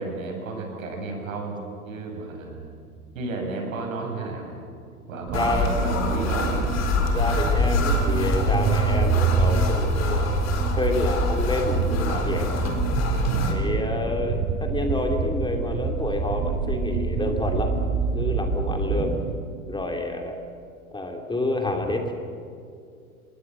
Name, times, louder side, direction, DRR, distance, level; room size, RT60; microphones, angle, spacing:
voice 1, 0.0-2.7 3.1-4.6 5.1-6.6 13.2-13.7, right 3 dB, 65° right, 2 dB, 7.3 m, -32 dB
sound 1, 5.3-13.5, left 4 dB, 35° left, 4.1 m, -26 dB
voice 2, 5.3-5.7 7.1-10.4 10.8-12.6 13.5-17.7 18.1-19.2 19.7-20.4 20.9-22.1, left 2 dB, 10° left, 3 dB, 2.8 m, -28 dB
sound 2, 5.3-19.4, right 5 dB, 40° right, 3.4 m, -26 dB
27.0 x 21.0 x 7.8 m, 2.4 s
figure-of-eight pair, 85°, 43 cm